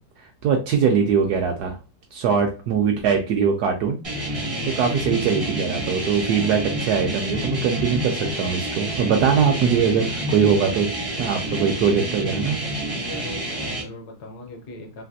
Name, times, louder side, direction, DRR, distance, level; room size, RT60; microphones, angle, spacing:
voice 1, 0.4-1.8 2.1-4.0 4.3-4.4 4.8-10.9 11.2-12.6, right 6 dB, 70° right, 3 dB, 0.9 m, -21 dB
sound 1, 4.0-13.8, right 1 dB, 40° right, 0.5 m, -28 dB
voice 2, 12.9-15.0, left 2 dB, 65° left, 2 dB, 1.1 m, -39 dB
3.3 x 2.5 x 2.6 m, 0.31 s
omnidirectional pair, 2.1 m